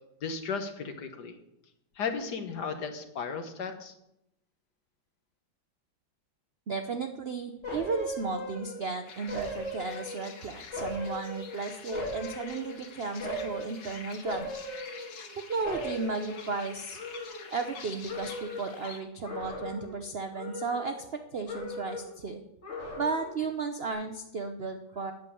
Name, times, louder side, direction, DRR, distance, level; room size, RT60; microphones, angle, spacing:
voice 1, 0.2-1.4 2.0-3.9, left 5 dB, 60° left, 7 dB, 1.7 m, -35 dB
voice 2, 6.7-14.6 15.5-17.0 17.5-22.4 23.0-25.1, right 4 dB, 55° right, 7 dB, 0.6 m, -34 dB
sound 1, 7.6-8.9 9.3-10.4 10.7-12.8 13.2-13.8 14.2-15.4 15.6-17.8 18.1-18.8 19.2-20.0 20.3-21.2 21.5-22.2 22.6-23.4 23.8-23.9, left 1 dB, 35° left, 2.9 m, -39 dB
sound 2, 9.0-19.0, left 5 dB, 85° left, 2.2 m, -47 dB
9.0 x 7.2 x 8.5 m, 0.83 s
omnidirectional pair, 2.1 m